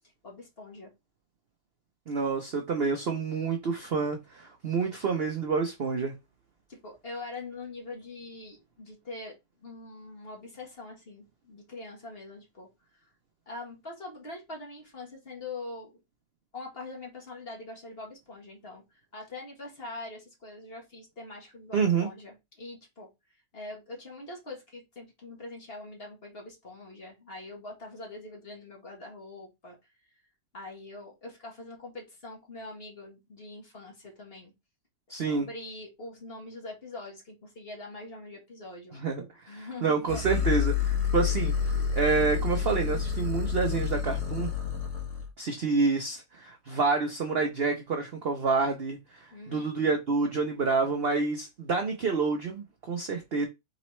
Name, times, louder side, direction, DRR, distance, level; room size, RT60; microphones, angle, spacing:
voice 1, 0.2-0.9 6.7-9.3 9.6-13.1 13.5-16.0 16.5-23.1 23.5-29.8 30.5-34.5 35.1-39.0 39.5-40.4 49.3-49.7, left 2 dB, 35° left, 1.5 m, -43 dB
voice 2, 2.1-6.1 21.7-22.1 35.1-35.5 38.9-44.5 45.4-53.4, right 4 dB, 65° right, 0.6 m, -28 dB
sound 1, 40.1-45.3, left 7 dB, 60° left, 1.6 m, -29 dB
4.1 x 3.9 x 3.1 m
omnidirectional pair, 2.0 m